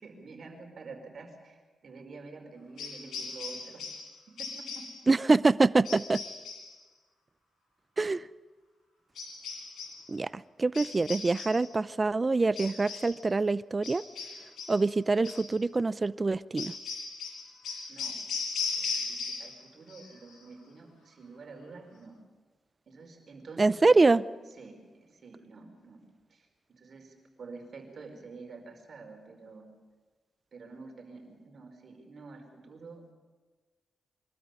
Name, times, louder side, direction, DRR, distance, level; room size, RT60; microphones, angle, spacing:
voice 1, 0.0-3.8 4.3-4.9 17.9-18.2 18.7-22.2 22.9-24.0 24.6-26.0 26.3-29.7 30.5-33.0, right 4 dB, 55° right, 3 dB, 5.0 m, -48 dB
sound 1, 2.8-4.1 4.4-5.0 5.8-6.7 9.1-10.0 10.7-11.7 12.5-13.2 13.8-14.8 15.2-15.5 16.6-19.6 19.9-20.4, left 4 dB, 90° left, 6.3 m, -38 dB
voice 2, 5.1-6.2 8.0-8.3 10.1-14.0 14.7-16.7 23.6-24.2, right 3 dB, 30° right, 17 dB, 0.6 m, -25 dB
24.0 x 13.0 x 9.8 m, 1.3 s
cardioid pair, 85°, 0 cm